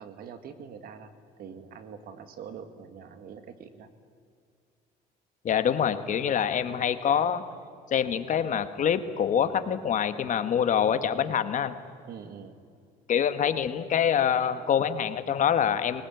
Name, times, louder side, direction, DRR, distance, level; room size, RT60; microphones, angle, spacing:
voice 1, 0.0-3.9 12.1-12.6, right 7 dB, 65° right, 9 dB, 2.0 m, -44 dB
voice 2, 5.4-7.4 7.9-11.8 13.1-16.0, left 8 dB, 50° left, 10 dB, 1.5 m, -25 dB
20.0 x 19.0 x 9.3 m, 2.3 s
cardioid pair, 95°, 16 cm